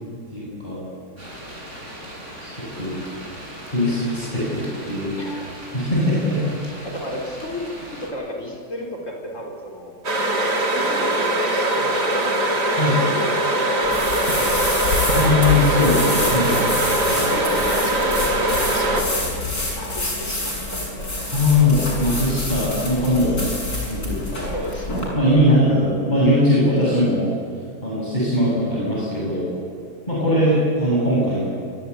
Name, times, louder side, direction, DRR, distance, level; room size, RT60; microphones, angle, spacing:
voice 1, 0.3-0.8 2.4-3.0 3.7-5.1 5.7-6.4 12.8-13.0 15.1-16.6 17.1-17.4 21.3-23.4 23.8-24.5 25.2-27.3 27.8-29.5 30.1-31.5, left 1 dB, 25° left, -7 dB, 7.5 m, -20 dB
sound 1, 1.2-8.1, equal, 45° right, 8.5 m, -38 dB
voice 2, 5.2-5.5 6.5-6.6 6.8-9.9 10.7-14.8 17.2-19.3 19.7-21.1 24.4-25.0 25.3-25.5, equal, 45° left, 0 dB, 5.0 m, -34 dB
sound 2, 10.0-19.0, right 1 dB, 80° right, 3.4 m, -21 dB
sound 3, 13.8-25.1, left 2 dB, 65° left, 7.5 m, -27 dB
27.5 x 23.5 x 8.5 m, 2.4 s
omnidirectional pair, 1.7 m